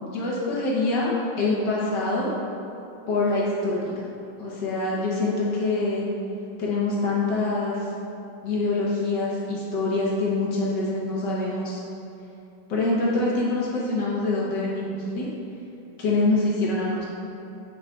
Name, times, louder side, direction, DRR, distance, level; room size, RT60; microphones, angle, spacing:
voice 1, 0.0-2.3 3.1-4.1 4.4-6.1 6.6-7.9 8.4-11.8 12.7-15.3 16.0-17.1, left 2 dB, 65° left, -5 dB, 1.4 m, -25 dB
8.4 x 4.8 x 2.3 m, 3.0 s
omnidirectional pair, 2.2 m